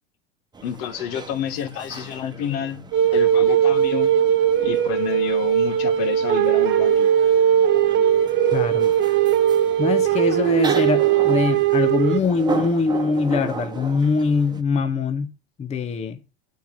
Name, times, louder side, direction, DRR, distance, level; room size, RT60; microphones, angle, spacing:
sound 1, 0.5-14.6, right 5 dB, 15° right, 1.2 m, -36 dB
voice 1, 0.6-2.8 3.1-4.2 4.6-7.1, left 9 dB, 60° left, 1.9 m, -29 dB
sound 2, 2.9-12.2, right 10 dB, 35° right, 1.3 m, -19 dB
voice 2, 8.5-8.9 9.8-15.3 15.6-16.2, left 4 dB, 20° left, 0.8 m, -22 dB
8.5 x 6.5 x 6.7 m
hypercardioid pair, 110°, 32 cm